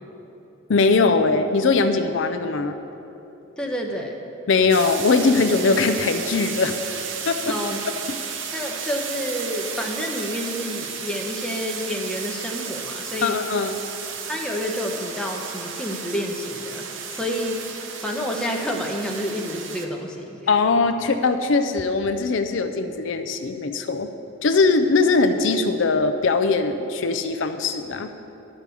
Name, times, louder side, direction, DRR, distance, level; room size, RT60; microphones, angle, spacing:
voice 1, 0.7-2.8 4.5-6.8 7.3-7.5 13.2-13.8 20.5-24.1 24.4-28.1, left 4 dB, 70° left, 8 dB, 0.5 m, -21 dB
voice 2, 3.6-4.2 7.5-7.8 8.5-13.4 14.3-17.6 18.0-20.5, left 1 dB, 5° left, -1 dB, 0.8 m, -29 dB
sound 1, 4.7-19.9, right 6 dB, 70° right, 0.8 m, -33 dB
11.0 x 6.0 x 6.9 m, 2.9 s
head